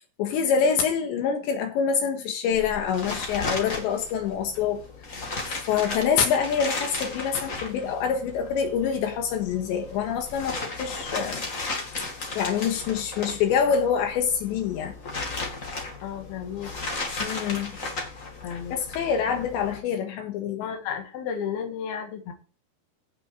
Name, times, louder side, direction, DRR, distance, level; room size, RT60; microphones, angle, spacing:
voice 1, 0.2-4.8 5.5-11.4 12.0-12.1 12.4-15.0 17.2-17.8 18.7-20.7, left 7 dB, 80° left, 3.6 m, -26 dB
sound 1, 2.5-19.8, left 3 dB, 45° left, 1.0 m, -35 dB
voice 2, 16.0-16.7 18.4-18.8 20.6-22.3, left 7 dB, 65° left, 3.5 m, -33 dB
16.5 x 6.3 x 4.7 m
omnidirectional pair, 5.2 m